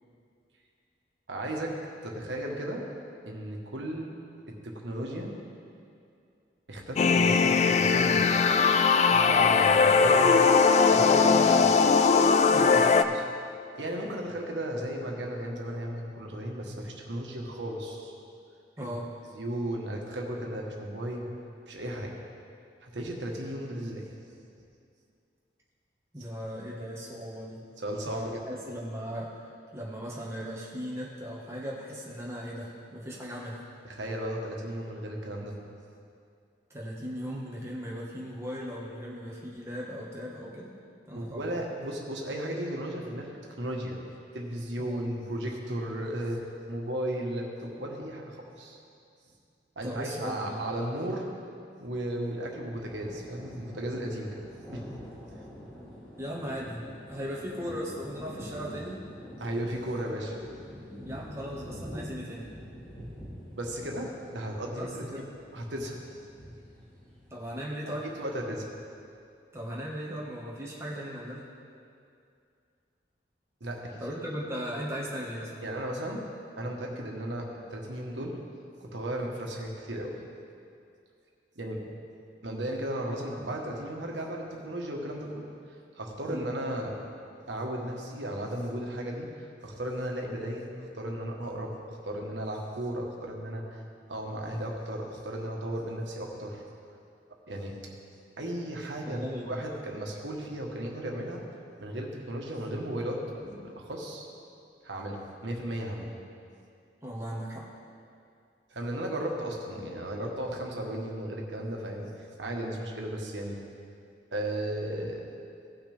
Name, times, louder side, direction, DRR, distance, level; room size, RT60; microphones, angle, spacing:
voice 1, 1.3-1.7 2.0-2.8 3.3-4.1 4.5-5.4 6.7-8.2 9.1-11.7 13.0-13.2 13.7-18.1 18.8-18.9 19.3-21.3 21.7-22.1 22.8-24.0 27.8-28.3 33.8-35.6 41.2-44.0 44.3-48.8 49.8-51.3 51.8-54.8 59.4-60.6 60.9-61.0 63.5-65.0 65.5-66.0 67.9-68.6 73.6-74.0 75.6-76.2 76.6-78.4 78.8-80.2 81.6-81.8 82.4-85.5 86.0-86.9 87.5-89.3 89.6-91.7 92.0-93.8 94.1-96.6 97.5-97.8 98.4-101.4 101.8-104.3 104.8-106.1 108.7-112.1 112.4-113.6 114.3-115.3, right 1 dB, 85° right, 0 dB, 1.4 m, -35 dB
sound 1, 7.0-13.0, left 5 dB, 40° left, 0.3 m, -20 dB
voice 2, 12.5-12.9 18.8-19.1 26.1-27.6 28.0-33.7 36.7-40.7 41.1-41.5 44.8-45.0 49.8-50.7 56.2-59.0 61.0-62.5 64.7-65.3 67.3-68.1 69.5-71.4 74.0-75.7 86.3-86.5 99.0-99.6 107.0-107.7, equal, 15° right, -5 dB, 1.6 m, -37 dB
sound 2, 52.7-67.7, equal, 15° left, 2.6 m, -46 dB
16.5 x 5.9 x 3.5 m, 2.4 s
head